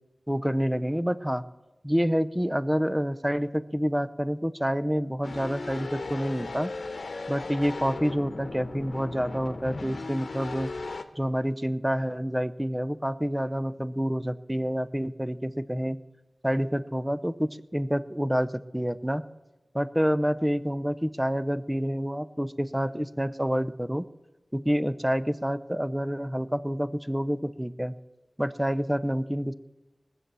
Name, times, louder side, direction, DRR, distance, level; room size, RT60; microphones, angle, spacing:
voice 1, 0.3-1.4 1.8-6.7 7.3-10.7 11.2-16.0 16.4-19.2 19.7-24.1 24.5-27.9 28.4-29.5, equal, 10° right, 14 dB, 0.6 m, -28 dB
sound 1, 5.2-11.0, left 3 dB, 85° left, 0.9 m, -37 dB
19.5 x 7.5 x 6.9 m, 1.1 s
wide cardioid pair, 45°, 0 cm